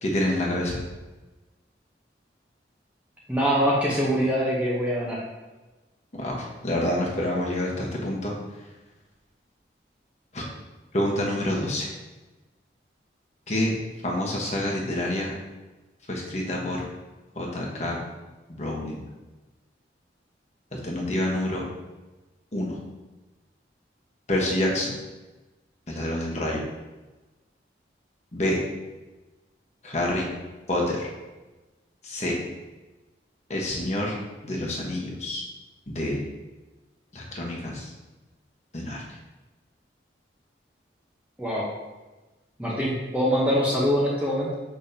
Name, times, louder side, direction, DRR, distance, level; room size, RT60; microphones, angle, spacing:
voice 1, 0.0-0.8 6.1-6.4 6.6-8.3 10.3-10.4 10.9-11.9 13.5-13.7 14.0-15.3 16.1-16.8 17.4-18.0 18.5-19.0 20.7-21.6 22.5-22.7 24.3-24.9 25.9-26.6 28.3-28.6 29.8-30.3 30.7-31.1 32.0-32.3 33.5-34.1 34.4-35.4 35.9-36.2 37.1-37.9 38.7-39.0, left 1 dB, 40° left, -2 dB, 1.2 m, -27 dB
voice 2, 3.3-5.2 41.4-41.7 42.6-44.5, equal, 10° right, -6 dB, 0.9 m, -24 dB
6.8 x 5.3 x 2.8 m, 1.2 s
head